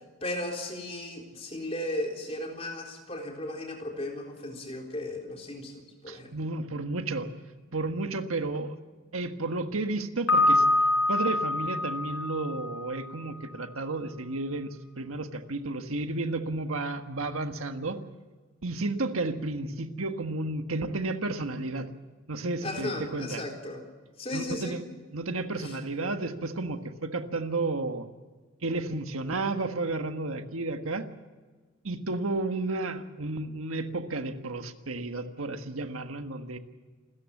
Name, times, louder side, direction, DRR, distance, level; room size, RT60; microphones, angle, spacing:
voice 1, 0.2-6.3 22.6-23.8 24.2-24.8 25.6-25.7, left 1 dB, 30° left, 1 dB, 4.0 m, -35 dB
voice 2, 6.1-7.3 7.7-8.8 9.1-18.0 18.6-21.9 22.3-23.4 24.3-24.8 25.1-28.1 28.6-31.1 31.8-36.6, right 2 dB, 90° right, 7 dB, 1.6 m, -32 dB
Piano, 10.3-13.2, left 2 dB, 85° left, 6.3 m, -25 dB
28.0 x 14.0 x 7.3 m, 1.4 s
head